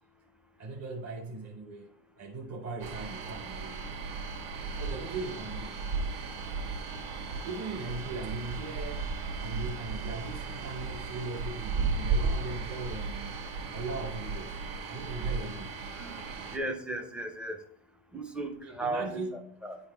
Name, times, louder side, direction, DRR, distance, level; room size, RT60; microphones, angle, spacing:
voice 1, 0.6-1.9 2.2-3.9 4.8-5.8 7.4-9.1 9.4-13.4 13.7-14.6 14.9-15.8 18.6-19.7, right 3 dB, 30° right, 0.9 m, -39 dB
sound 1, 2.8-16.6, right 4 dB, 75° right, 1.5 m, -35 dB
voice 2, 15.9-17.6 18.1-19.2 19.6-19.8, right 2 dB, ahead, 0.4 m, -36 dB
9.8 x 4.0 x 3.4 m
supercardioid pair, 105°, 50 cm